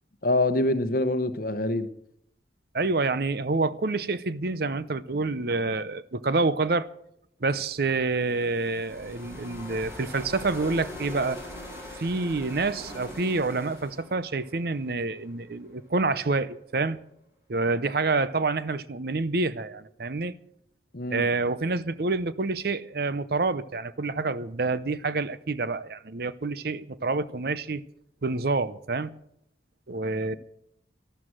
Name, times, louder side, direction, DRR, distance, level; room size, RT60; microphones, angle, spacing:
voice 1, 0.2-1.9 20.9-21.2, left 2 dB, 55° left, 1.0 m, -25 dB
voice 2, 2.7-6.9 7.4-11.4 12.0-17.0 17.5-20.4 21.1-27.8 28.2-29.1 29.9-30.3, right 3 dB, 60° right, 0.7 m, -27 dB
sound 1, 7.6-15.6, left 1 dB, 15° right, 6.7 m, -42 dB
12.5 x 12.5 x 7.5 m
head